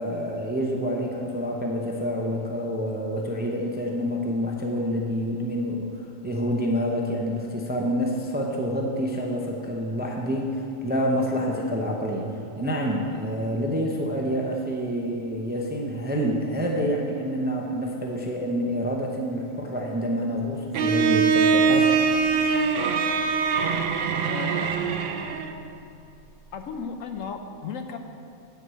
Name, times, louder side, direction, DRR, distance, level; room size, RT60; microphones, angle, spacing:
voice 1, 0.0-21.9, equal, 10° right, 0 dB, 0.5 m, -27 dB
Bowed string instrument, 20.7-25.6, right 5 dB, 60° right, 0.6 m, -22 dB
voice 2, 24.2-24.8 26.5-28.0, left 5 dB, 70° left, 6 dB, 1.0 m, -35 dB
9.9 x 4.7 x 7.7 m, 2.6 s
omnidirectional pair, 1.5 m